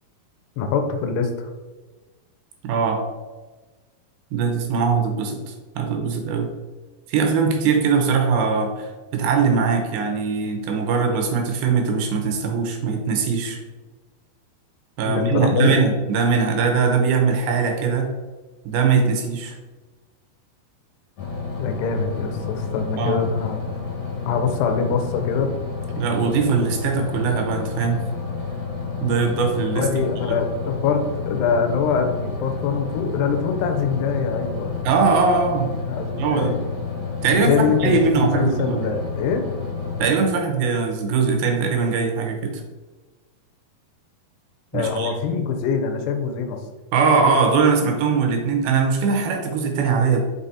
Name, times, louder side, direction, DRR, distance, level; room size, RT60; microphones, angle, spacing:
voice 1, 0.6-1.5 15.1-15.8 21.6-23.6 24.3-25.5 29.8-34.8 35.9-36.6 37.3-39.4 44.7-46.6, left 5 dB, 90° left, 6 dB, 2.9 m, -24 dB
voice 2, 2.6-3.0 4.3-6.5 7.1-13.6 15.0-18.1 18.7-19.6 23.0-23.2 26.0-28.0 29.0-29.9 30.3-30.4 34.8-35.7 36.2-36.6 37.2-38.9 40.0-42.6 44.7-45.1 46.9-50.2, right 5 dB, 75° right, 3 dB, 2.7 m, -21 dB
sound 1, 21.2-40.1, left 5 dB, 50° left, 2.2 m, -30 dB
6.1 x 5.1 x 4.1 m, 1.3 s
omnidirectional pair, 4.6 m